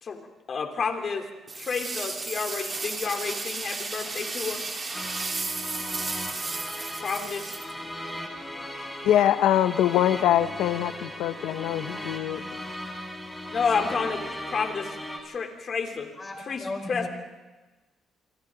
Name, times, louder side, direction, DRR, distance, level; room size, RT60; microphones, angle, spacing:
voice 1, 0.0-1.2 1.6-4.6 7.0-7.5 13.5-15.0 15.2-16.1 16.4-17.1, left 5 dB, 50° left, 4 dB, 3.5 m, -30 dB
sound 1, 1.5-8.2, right 3 dB, 35° right, 3.9 m, -34 dB
sound 2, 4.9-15.2, left 1 dB, 5° left, 5.4 m, -37 dB
voice 2, 9.0-12.4, left 11 dB, 85° left, 11 dB, 0.8 m, -23 dB
voice 3, 16.2-17.1, left 2 dB, 25° left, 3 dB, 4.8 m, -35 dB
28.5 x 24.5 x 3.9 m, 1.2 s
cardioid pair, 90°, 0 cm